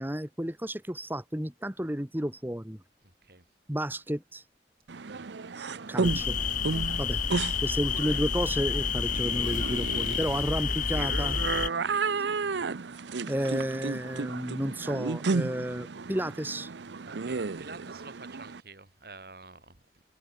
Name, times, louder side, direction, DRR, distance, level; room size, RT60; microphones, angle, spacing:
voice 1, 0.0-2.8 3.7-4.4 5.6-6.4 7.0-7.2 7.6-11.4 13.3-16.7, equal, 10° right, 1.5 m, -32 dB
voice 2, 4.9-5.3 10.3-10.5 11.6-12.0 17.1-20.0, right 3 dB, 60° right, 4.5 m, -50 dB
sound 1, 4.9-18.6, right 4 dB, 90° right, 0.7 m, -33 dB
sound 2, 6.0-11.7, left 6 dB, 45° left, 1.6 m, -29 dB
head